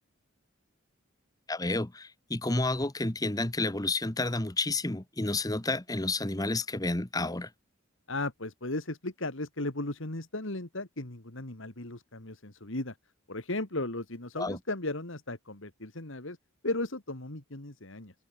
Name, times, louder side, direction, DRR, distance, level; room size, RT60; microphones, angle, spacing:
voice 1, 1.5-7.5 14.4-14.6, left 2 dB, 15° left, 1.1 m, -30 dB
voice 2, 8.1-13.0 13.3-16.4 16.6-18.1, left 2 dB, 65° left, 2.4 m, -36 dB
open air
head